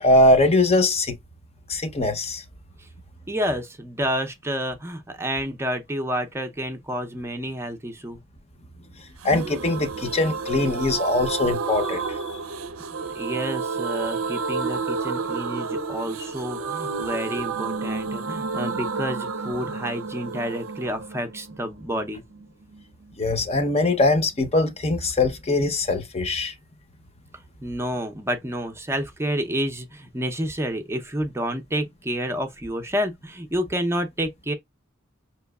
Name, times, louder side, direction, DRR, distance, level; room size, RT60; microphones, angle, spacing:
voice 1, 0.0-1.2 1.7-2.4 9.2-12.2 23.2-26.5, left 2 dB, 30° left, 0.7 m, -21 dB
voice 2, 3.3-8.2 13.1-22.2 27.6-34.5, equal, 10° right, 0.6 m, -29 dB
sound 1, 9.2-22.8 23.1-23.2 23.4-23.5, right 4 dB, 85° right, 0.6 m, -30 dB
5.6 x 3.0 x 2.3 m
head